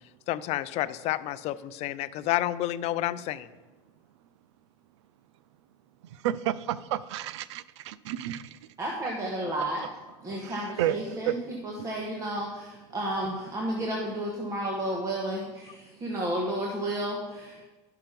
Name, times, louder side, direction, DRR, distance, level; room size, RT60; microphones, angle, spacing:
voice 1, 0.3-3.5, left 14 dB, 50° left, 15 dB, 0.5 m, -30 dB
voice 2, 6.2-8.4 10.8-11.0, right 12 dB, 90° right, 17 dB, 0.4 m, -30 dB
voice 3, 8.8-9.8 10.2-17.7, right 1 dB, 20° right, -1 dB, 1.4 m, -32 dB
11.5 x 5.8 x 5.2 m, 1.2 s
supercardioid pair, 120°, 15 cm